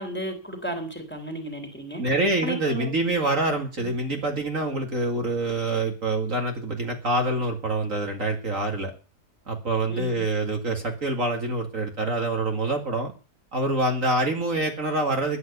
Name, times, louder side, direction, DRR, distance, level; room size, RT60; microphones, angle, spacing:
voice 1, 0.0-2.0 2.4-2.9 9.9-10.2, right 1 dB, 5° left, 5 dB, 3.4 m, -33 dB
voice 2, 2.0-8.9 9.5-13.1 13.5-15.4, right 2 dB, 50° right, 3 dB, 2.4 m, -26 dB
13.0 x 9.8 x 6.8 m, 0.34 s
omnidirectional pair, 1.8 m